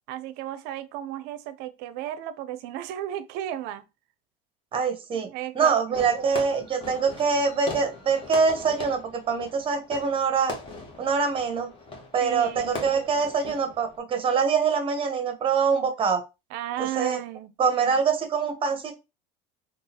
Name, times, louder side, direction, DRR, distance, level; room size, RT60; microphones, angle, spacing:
voice 1, 0.1-3.8 5.1-5.8 12.2-12.8 16.5-17.5, right 12 dB, 70° right, 0.5 m, -34 dB
voice 2, 4.7-5.3 5.5-10.6 11.0-11.7 12.1-16.2 16.8-17.2 17.6-18.9, right 5 dB, 30° right, 0.8 m, -24 dB
Fireworks, 5.9-14.0, left 3 dB, 30° left, 1.1 m, -40 dB
3.8 x 2.4 x 2.8 m
cardioid pair, 130°, 18 cm